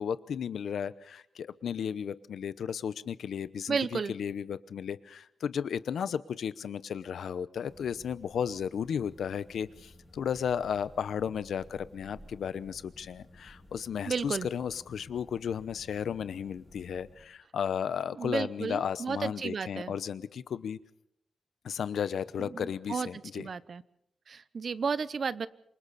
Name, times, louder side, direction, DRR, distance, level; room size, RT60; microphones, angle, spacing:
voice 1, 0.0-20.8 21.6-23.5, left 8 dB, 80° left, 16 dB, 0.9 m, -34 dB
voice 2, 3.7-4.1 14.1-14.5 18.2-19.9 22.5-23.1 23.3-23.8 24.3-25.5, right 5 dB, 45° right, 17 dB, 0.8 m, -33 dB
sound 1, 7.7-17.3, left 1 dB, 10° left, 5.8 m, -55 dB
27.5 x 24.0 x 4.2 m, 0.72 s
wide cardioid pair, 150°, 0 cm